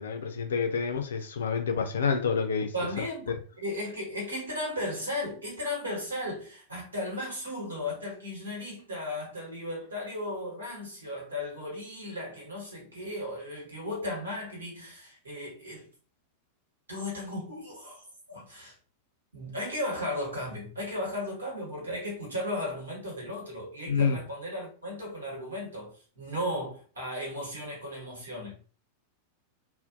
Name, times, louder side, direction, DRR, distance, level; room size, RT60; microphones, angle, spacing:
voice 1, 0.0-2.7 23.9-24.2, left 5 dB, 65° left, 0.4 m, -28 dB
voice 2, 2.7-15.9 16.9-18.0 18.3-18.7 19.3-28.6, left 1 dB, 75° right, 1.2 m, -35 dB
2.5 x 2.1 x 2.4 m
figure-of-eight pair, 90°, 0 cm